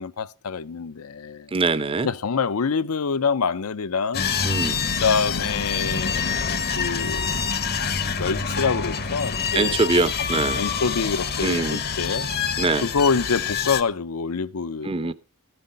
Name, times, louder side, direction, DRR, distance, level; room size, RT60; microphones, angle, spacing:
voice 1, 0.0-1.5 2.0-4.3 4.9-7.5 8.2-9.8 10.6-12.3 12.8-15.1, left 5 dB, 70° left, 0.6 m, -26 dB
voice 2, 1.5-2.1 4.4-4.8 9.5-10.6 11.4-11.8 12.6-12.9 14.8-15.1, right 3 dB, 25° right, 0.6 m, -23 dB
sound 1, 4.1-13.8, left 6 dB, 45° left, 0.9 m, -26 dB
14.0 x 7.9 x 5.3 m
head